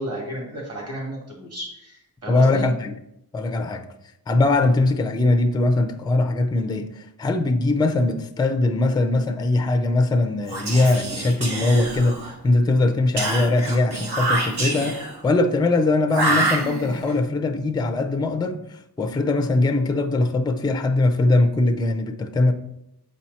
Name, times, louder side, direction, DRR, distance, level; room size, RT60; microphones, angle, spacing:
voice 1, 0.0-2.7, right 1 dB, 40° right, 2.8 m, -33 dB
voice 2, 2.3-2.9 3.3-3.9 4.3-22.5, left 2 dB, 10° left, 0.4 m, -21 dB
Whispering, 10.4-12.4 13.2-15.2 16.1-17.1, right 2 dB, 80° right, 1.8 m, -26 dB
7.5 x 4.4 x 4.2 m
wide cardioid pair, 155°, 39 cm